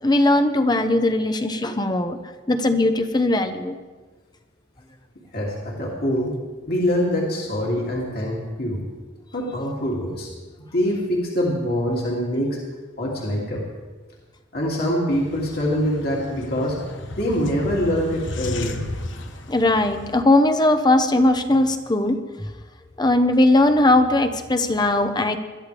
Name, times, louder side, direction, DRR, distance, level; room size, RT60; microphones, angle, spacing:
voice 1, 0.0-2.2 2.5-3.8 19.5-22.5 23.0-25.4, left 2 dB, 20° left, 8 dB, 1.0 m, -19 dB
voice 2, 5.3-6.4 6.7-8.8 9.3-10.3 10.7-12.6 13.0-13.6 14.5-16.8 17.2-18.7, equal, 55° left, -3 dB, 2.9 m, -24 dB
sound 1, 15.1-20.2, left 1 dB, 85° left, 1.3 m, -34 dB
22.0 x 13.5 x 3.5 m, 1.3 s
head